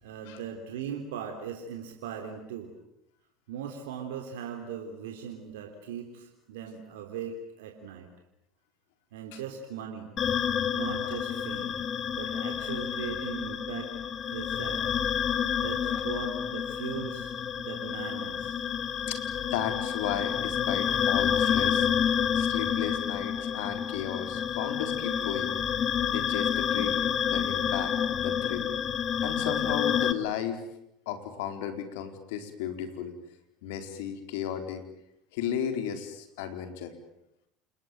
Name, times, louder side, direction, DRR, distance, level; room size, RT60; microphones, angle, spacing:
voice 1, 0.0-2.7 3.5-8.1 9.1-10.1 10.7-11.8 12.2-13.9 14.3-14.8 15.6-18.6, right 7 dB, 80° right, 3 dB, 3.5 m, -39 dB
sound 1, 10.2-30.1, left 8 dB, 40° left, 2.0 m, -29 dB
voice 2, 19.1-21.9 22.3-25.5 26.1-28.7 29.2-30.6 31.1-33.1 33.6-34.8 35.3-36.9, left 9 dB, 75° left, 7 dB, 4.4 m, -34 dB
29.0 x 20.5 x 9.3 m, 0.81 s
hypercardioid pair, 80°, 0 cm